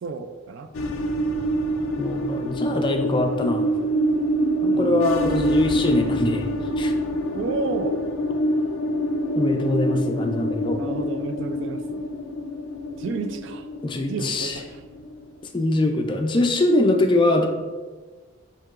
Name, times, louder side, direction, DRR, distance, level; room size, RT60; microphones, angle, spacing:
voice 1, 0.0-0.7 4.7-5.1 7.3-8.0 10.7-12.0 13.0-13.7 14.1-14.8, right 4 dB, 60° right, 8 dB, 0.3 m, -31 dB
sound 1, 0.7-15.4, right 1 dB, 85° left, 0.4 m, -26 dB
voice 2, 2.0-3.7 4.6-6.5 6.8-6.9 9.4-10.8 13.8-14.6 15.5-17.5, left 2 dB, 25° left, 4 dB, 0.3 m, -22 dB
7.4 x 2.8 x 2.4 m, 1.4 s
head